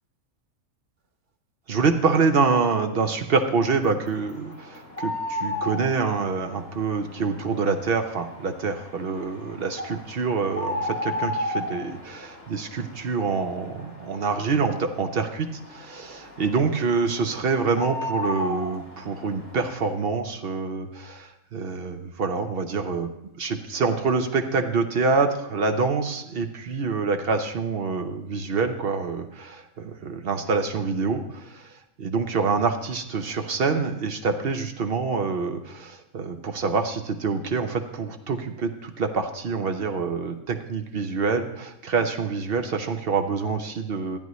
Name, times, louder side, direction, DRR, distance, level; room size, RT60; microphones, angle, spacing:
voice 1, 1.7-23.1 23.4-31.6 32.0-44.2, right 4 dB, 50° right, 6 dB, 0.8 m, -26 dB
sound 1, 3.6-19.9, left 2 dB, 40° left, 2.6 m, -35 dB
14.0 x 9.3 x 3.1 m, 0.86 s
omnidirectional pair, 1.5 m